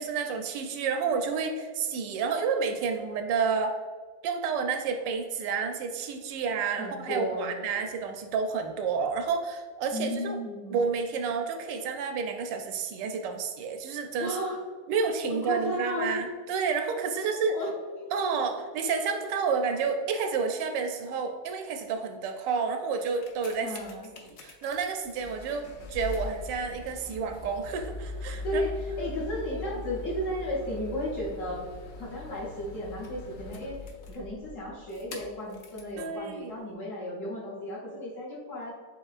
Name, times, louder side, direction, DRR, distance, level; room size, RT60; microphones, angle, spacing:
voice 1, 0.0-3.8 4.2-10.4 10.7-14.4 14.9-17.6 18.1-23.7 24.2-28.6 36.0-36.5, right 5 dB, 85° right, 6 dB, 1.2 m, -30 dB
voice 2, 6.8-7.6 9.9-10.8 14.2-14.6 15.3-16.2 17.5-18.1 23.6-24.1 28.4-28.7 29.0-31.7 32.0-33.8 34.1-38.7, left 1 dB, 50° left, -4 dB, 1.2 m, -34 dB
sound 1, 23.0-36.0 36.7-36.8, left 2 dB, 70° left, 0.8 m, -41 dB
7.1 x 2.8 x 2.4 m, 1.5 s
omnidirectional pair, 1.9 m